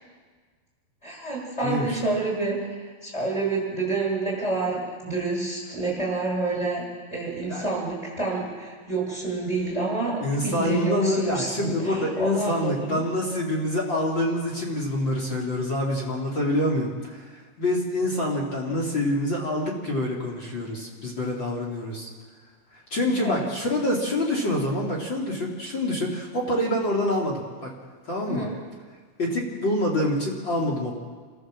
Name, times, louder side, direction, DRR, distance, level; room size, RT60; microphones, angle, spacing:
voice 1, 1.0-6.8 7.1-13.0 23.2-23.7 28.2-28.5, right 3 dB, 15° left, -3 dB, 7.7 m, -28 dB
voice 2, 10.2-17.3 17.6-22.1 22.9-27.7 28.1-28.5 29.2-31.0, left 1 dB, 35° left, -2 dB, 3.0 m, -26 dB
27.5 x 14.5 x 7.5 m, 1.5 s
omnidirectional pair, 4.5 m